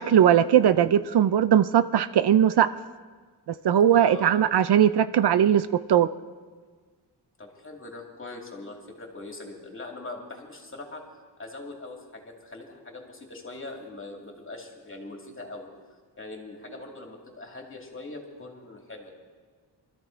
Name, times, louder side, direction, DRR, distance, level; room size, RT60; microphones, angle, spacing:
voice 1, 0.0-2.7 3.6-6.1, right 9 dB, 65° right, 12 dB, 0.5 m, -19 dB
voice 2, 3.9-4.4 7.4-11.0 11.4-15.7 16.2-19.1, left 2 dB, 30° left, 1 dB, 2.5 m, -41 dB
23.5 x 13.5 x 4.5 m, 1.5 s
wide cardioid pair, 165°, 43 cm